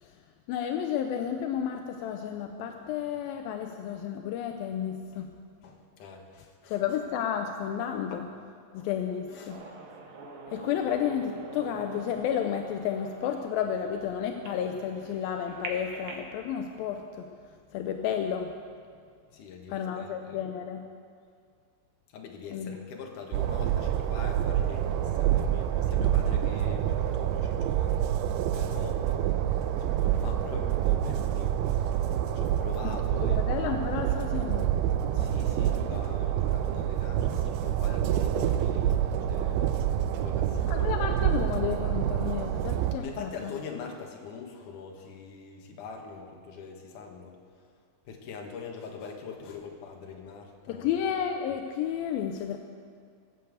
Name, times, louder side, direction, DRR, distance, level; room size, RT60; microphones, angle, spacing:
voice 1, 0.5-5.3 6.7-8.3 8.7-9.6 10.5-17.3 17.7-18.5 19.7-20.8 22.5-22.8 32.8-33.0 33.3-34.7 40.7-43.5 50.7-52.6, left 9 dB, 85° left, 5 dB, 2.5 m, -31 dB
voice 2, 5.6-6.8 8.1-8.2 8.8-8.9 9.3-9.6 19.3-20.4 22.1-28.1 28.5-31.6 31.8-31.9 32.4-33.4 35.1-41.0 43.0-47.4 48.1-50.9, left 5 dB, 65° left, 2 dB, 2.8 m, -43 dB
sound 1, 9.5-16.3, right 3 dB, 60° right, 2.5 m, -44 dB
Train, 23.3-43.0, right 11 dB, 90° right, 2.6 m, -27 dB
18.5 x 7.8 x 8.1 m, 2.1 s
omnidirectional pair, 4.2 m